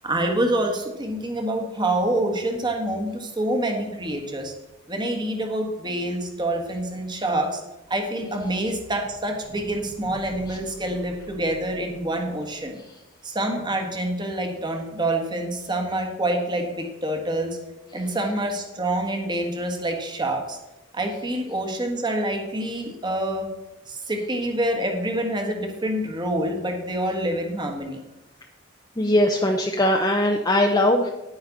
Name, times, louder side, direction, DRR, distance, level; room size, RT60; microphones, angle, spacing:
voice 1, 0.0-4.5 4.9-7.6 7.9-12.8 13.2-17.6 17.9-20.6 20.9-23.5 23.9-28.0, right 1 dB, 20° right, 3 dB, 1.6 m, -26 dB
voice 2, 29.0-31.1, left 1 dB, 20° left, 1 dB, 0.7 m, -20 dB
10.5 x 9.5 x 4.0 m, 0.99 s
head